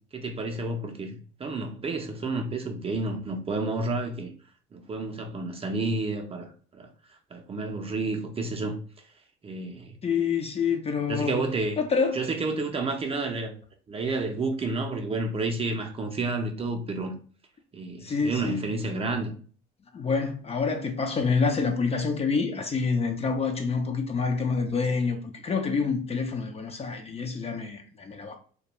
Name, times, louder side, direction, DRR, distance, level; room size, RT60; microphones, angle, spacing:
voice 1, 0.1-4.3 4.7-6.5 6.8-6.9 7.3-8.8 9.4-10.0 11.1-11.8 12.1-13.5 13.9-17.1 17.7-19.3, right 3 dB, 30° right, 0.5 m, -30 dB
voice 2, 10.0-11.4 11.8-12.3 18.0-18.6 19.9-25.2 25.4-28.3, left 5 dB, 30° left, 0.4 m, -27 dB
2.3 x 2.2 x 2.9 m
supercardioid pair, 90°, 21 cm